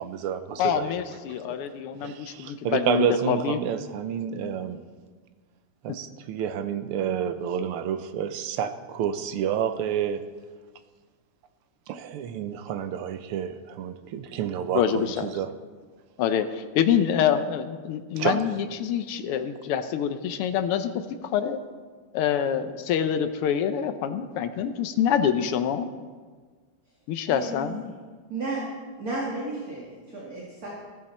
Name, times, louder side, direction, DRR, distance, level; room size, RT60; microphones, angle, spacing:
voice 1, 0.0-0.9 2.0-4.8 5.8-10.2 11.9-15.5 18.2-18.4, right 8 dB, 80° right, 11 dB, 1.7 m, -29 dB
voice 2, 0.6-3.6 5.9-6.0 14.7-15.3 16.2-21.6 22.1-25.9 27.1-27.8, left 8 dB, 90° left, 9 dB, 1.7 m, -26 dB
voice 3, 27.3-27.8 28.3-28.6 29.0-30.7, right 2 dB, 40° right, -4 dB, 2.4 m, -33 dB
14.5 x 14.5 x 4.3 m, 1.5 s
omnidirectional pair, 2.4 m